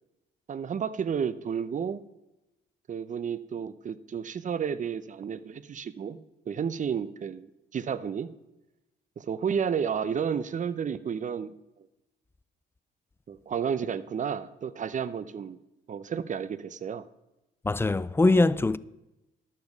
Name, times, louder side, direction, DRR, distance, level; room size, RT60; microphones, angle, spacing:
voice 1, 0.5-2.0 2.9-6.2 6.5-8.3 9.2-11.5 13.3-15.6 15.9-17.0, right 7 dB, 40° right, 0.6 m, -31 dB
voice 2, 17.6-18.8, left 2 dB, 10° left, 0.3 m, -22 dB
11.5 x 7.1 x 5.3 m
cardioid pair, 90°, 20 cm